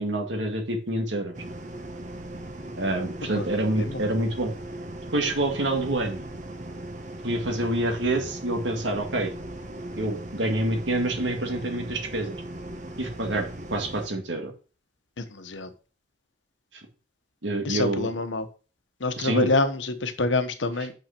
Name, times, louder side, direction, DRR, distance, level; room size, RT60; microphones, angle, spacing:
voice 1, 0.0-1.3 2.8-4.5 5.1-6.3 7.2-9.3 10.0-12.4 13.0-14.5 17.4-18.1 19.2-19.5, right 1 dB, 85° right, 2.1 m, -27 dB
sound 1, 1.3-14.1, right 1 dB, 40° right, 1.0 m, -38 dB
voice 2, 15.2-15.7 17.6-18.5 19.0-20.9, left 2 dB, 90° left, 1.0 m, -26 dB
6.0 x 5.6 x 5.8 m
head